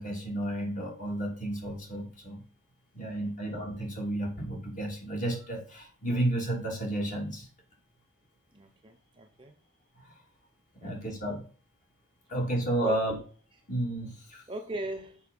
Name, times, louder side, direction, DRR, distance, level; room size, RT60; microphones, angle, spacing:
voice 1, 0.0-2.4 2.9-7.5 10.0-10.1 10.8-11.4 12.3-13.1 13.7-14.4, right 1 dB, 35° left, 2.5 m, -32 dB
voice 2, 8.5-9.5 10.8-11.0 12.8-13.0 14.5-15.2, right 1 dB, 25° right, 0.8 m, -39 dB
6.8 x 5.4 x 5.2 m
head